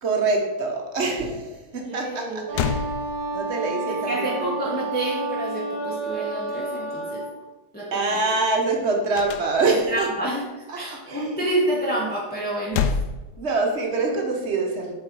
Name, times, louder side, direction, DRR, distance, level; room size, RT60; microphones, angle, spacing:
voice 1, 0.0-2.9 3.3-4.6 7.9-10.3 10.7-11.3 13.4-14.9, right 3 dB, 40° right, 2 dB, 1.2 m, -25 dB
voice 2, 1.9-2.8 4.0-7.3 7.7-8.2 9.7-10.5 10.8-12.9, right 1 dB, 10° left, -4 dB, 0.7 m, -28 dB
sound 1, 2.1-2.2 2.5-3.7 9.1-10.0 12.4-14.0, left 6 dB, 75° left, 0.9 m, -28 dB
Wind instrument woodwind instrument, 2.5-7.3, right 2 dB, 85° right, 2.5 m, -30 dB
8.0 x 4.5 x 4.6 m, 1.1 s
omnidirectional pair, 2.2 m